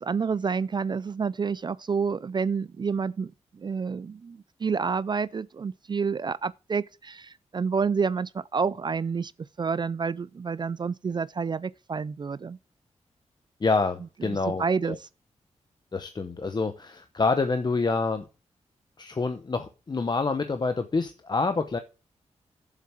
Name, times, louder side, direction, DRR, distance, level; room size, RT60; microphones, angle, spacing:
voice 1, 0.0-9.3 9.6-12.6 14.3-15.0, right 5 dB, 40° right, 0.4 m, -29 dB
voice 2, 13.6-15.0 15.9-18.3 19.0-21.8, left 3 dB, 35° left, 0.9 m, -27 dB
7.5 x 6.9 x 6.0 m
cardioid pair, 80°, 12 cm